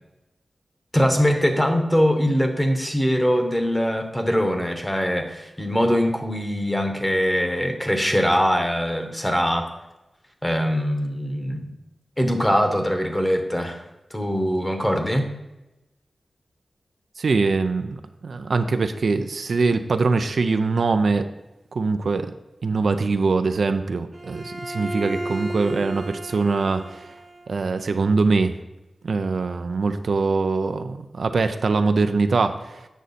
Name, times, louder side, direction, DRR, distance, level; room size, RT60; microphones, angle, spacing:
voice 1, 0.9-9.7 10.4-11.7 12.2-13.8 14.1-15.3, equal, 10° left, 5 dB, 1.1 m, -22 dB
voice 2, 17.2-18.0 18.2-21.3 21.7-22.3 22.6-27.1 27.5-28.5 29.0-32.8, right 4 dB, 75° right, 8 dB, 0.5 m, -22 dB
Bowed string instrument, 24.1-27.6, right 1 dB, 30° right, 0.7 m, -34 dB
8.2 x 6.3 x 4.1 m, 0.98 s
wide cardioid pair, 100°, 0 cm